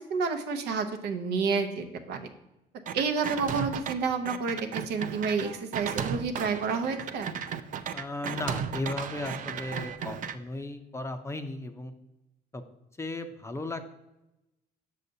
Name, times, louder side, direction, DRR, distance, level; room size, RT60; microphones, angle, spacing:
voice 1, 0.1-2.3 2.9-7.3, right 5 dB, 80° right, 5 dB, 0.8 m, -29 dB
sound 1, 2.9-3.9 4.3-10.3, right 7 dB, 50° right, 0.4 m, -35 dB
voice 2, 7.9-11.9 12.5-12.6 13.0-13.8, left 2 dB, 15° left, 7 dB, 0.5 m, -35 dB
6.6 x 6.5 x 2.7 m, 0.94 s
cardioid pair, 110°, 17 cm